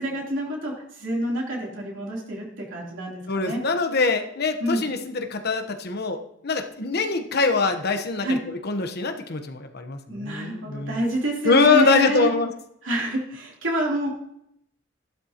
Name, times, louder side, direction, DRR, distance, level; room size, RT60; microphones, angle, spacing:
voice 1, 0.0-3.6 4.6-4.8 8.2-8.4 10.1-12.3 12.8-14.1, right 1 dB, 70° right, -2 dB, 3.3 m, -28 dB
voice 2, 3.3-11.0 11.4-12.5, left 4 dB, 55° left, 6 dB, 1.1 m, -23 dB
13.0 x 12.0 x 3.0 m, 0.74 s
head